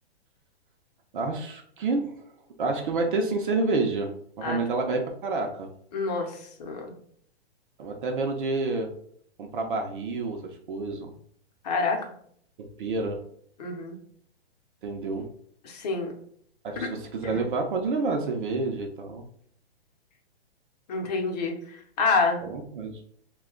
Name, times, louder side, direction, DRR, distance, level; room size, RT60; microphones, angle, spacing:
voice 1, 1.1-2.1 2.6-4.1 4.4-5.7 7.8-8.9 9.4-11.1 12.8-13.2 14.8-15.3 16.6-19.2 22.4-23.0, right 3 dB, 55° right, 3 dB, 0.6 m, -28 dB
voice 2, 5.9-6.9 11.6-12.0 13.6-13.9 15.6-16.1 17.2-17.4 20.9-22.4, left 4 dB, 40° left, 2 dB, 0.8 m, -27 dB
2.8 x 2.3 x 3.7 m, 0.63 s
hypercardioid pair, 155°, 32 cm